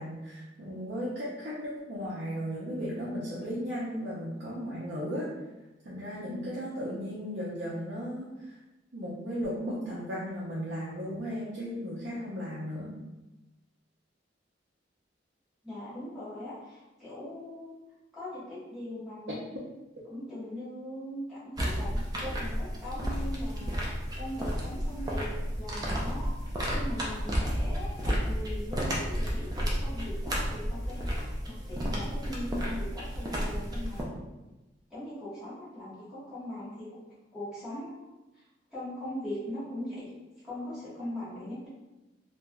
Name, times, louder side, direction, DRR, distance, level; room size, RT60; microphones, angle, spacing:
voice 1, 0.0-5.3 5.8-8.5 8.9-12.9, equal, 65° right, -8 dB, 0.6 m, -35 dB
voice 2, 15.6-17.8 18.1-19.4 20.1-23.8 24.2-25.3 25.6-26.3 26.7-31.0 31.4-34.1 34.9-37.0 37.3-38.1 38.4-38.5 38.7-40.1 40.4-41.7, left 1 dB, 5° right, -12 dB, 1.3 m, -40 dB
sound 1, 21.6-34.0, equal, 20° right, 0.5 m, -32 dB
3.3 x 2.5 x 2.2 m, 1.1 s
head